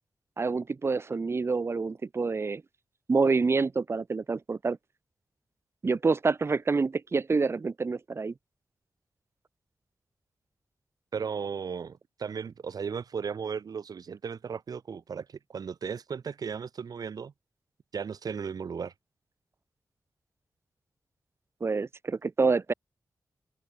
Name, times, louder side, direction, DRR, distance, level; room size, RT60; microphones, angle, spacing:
voice 1, 0.4-2.6 3.1-4.8 5.8-8.3 21.6-22.7, right 4 dB, 40° right, 6.8 m, -27 dB
voice 2, 11.1-17.3 17.9-18.9, right 6 dB, 70° right, 4.6 m, -36 dB
open air
wide cardioid pair, 165°, 7 cm